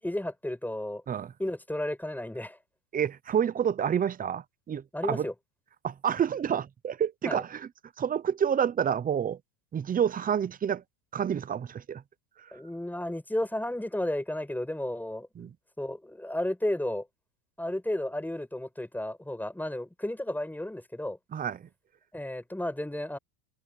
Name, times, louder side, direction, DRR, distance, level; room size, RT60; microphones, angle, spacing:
voice 1, 0.0-1.0 1.4-2.6 4.9-5.3 7.3-7.4 12.5-15.3 15.8-17.1 17.6-21.2 22.1-23.2, left 1 dB, 5° left, 7.3 m, -33 dB
voice 2, 2.9-5.3 5.8-7.7 8.0-9.4 9.7-10.8 11.1-12.0 12.4-12.5 15.4-15.5 21.3-21.7, right 8 dB, 20° right, 0.6 m, -29 dB
supercardioid pair, 125°, 49 cm